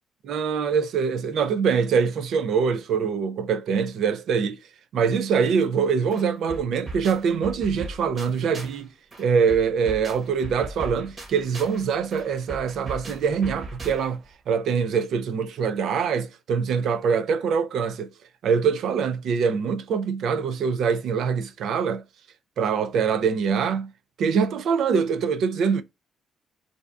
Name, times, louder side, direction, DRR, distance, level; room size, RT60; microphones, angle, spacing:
voice 1, 0.3-4.6 4.9-8.9 9.2-18.1 18.4-22.0 22.6-23.9 24.2-25.8, right 6 dB, 75° right, 0.4 m, -24 dB
sound 1, 5.8-5.9 6.1-8.8 9.1-14.3, right 2 dB, 40° right, 1.0 m, -39 dB
2.6 x 2.3 x 3.3 m
cardioid pair, 90°, 0 cm